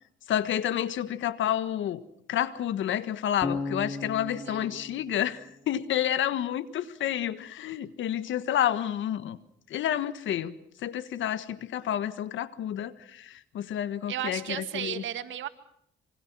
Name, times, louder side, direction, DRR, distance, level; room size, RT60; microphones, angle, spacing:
voice 1, 0.3-2.0 2.3-9.4 9.7-10.5 10.8-15.0, left 11 dB, 75° left, 13 dB, 1.5 m, -29 dB
Bass guitar, 3.4-6.4, left 3 dB, 25° left, 2.8 m, -37 dB
voice 2, 4.2-4.8 14.1-15.5, right 11 dB, 75° right, 11 dB, 1.8 m, -35 dB
26.5 x 24.0 x 6.2 m, 0.70 s
cardioid pair, 90°, 20 cm